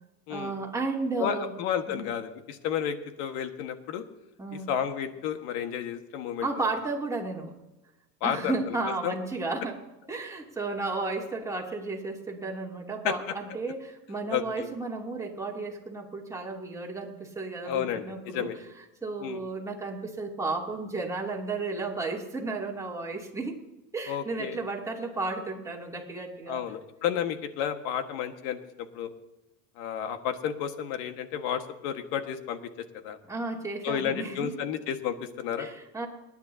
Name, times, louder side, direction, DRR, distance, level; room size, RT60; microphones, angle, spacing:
voice 1, 0.3-1.5 1.9-2.1 4.4-4.7 6.4-7.5 8.2-9.8 10.1-18.5 19.0-23.6 23.9-26.6 33.3-34.5 35.6-36.1, right 3 dB, 5° right, -2 dB, 2.8 m, -33 dB
voice 2, 1.2-4.0 4.7-6.5 8.2-8.8 9.0-9.1 13.0-13.3 14.3-14.7 17.6-18.6 19.2-19.4 24.1-24.6 26.5-28.6 28.9-29.1 29.8-32.6 32.9-33.2 33.8-35.7, left 9 dB, 65° left, 8 dB, 1.7 m, -31 dB
29.0 x 10.5 x 2.8 m, 1.0 s
supercardioid pair, 105°, 47 cm